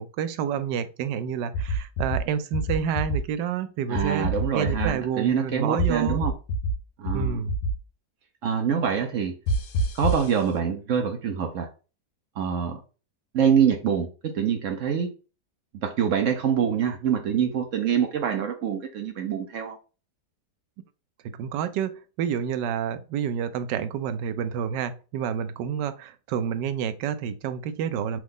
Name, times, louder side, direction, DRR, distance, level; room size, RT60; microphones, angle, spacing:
voice 1, 0.0-6.3 7.1-7.5 21.4-28.2, right 8 dB, 85° right, 1.2 m, -29 dB
sound 1, 1.5-2.2 2.5-3.2 3.9-4.9 5.8-6.7 7.1-7.7 9.5-10.3, right 1 dB, 75° left, 1.4 m, -25 dB
voice 2, 3.9-6.3 7.0-7.4 8.4-9.4 9.9-11.7 12.4-12.8 13.3-15.1 15.7-19.8, right 7 dB, 65° right, 0.8 m, -25 dB
6.1 x 2.4 x 3.6 m
omnidirectional pair, 1.9 m